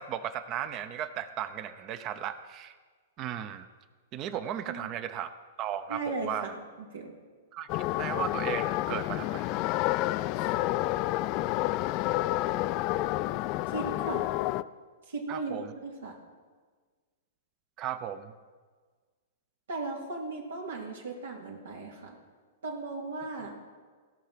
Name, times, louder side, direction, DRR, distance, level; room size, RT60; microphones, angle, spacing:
voice 1, 0.0-2.8 3.2-3.7 4.1-5.3 5.6-6.5 7.5-9.5 15.3-15.7 17.8-18.3, right 10 dB, 35° right, 12 dB, 0.8 m, -36 dB
voice 2, 5.9-6.5 6.8-7.2 10.3-10.5 13.7-14.3 15.1-16.2 19.7-22.2 22.6-23.5, right 3 dB, 80° right, 0 dB, 2.3 m, -37 dB
sound 1, 7.7-14.6, left 17 dB, 40° left, 0.3 m, -29 dB
16.5 x 5.8 x 5.9 m, 1.5 s
hypercardioid pair, 130°, 0 cm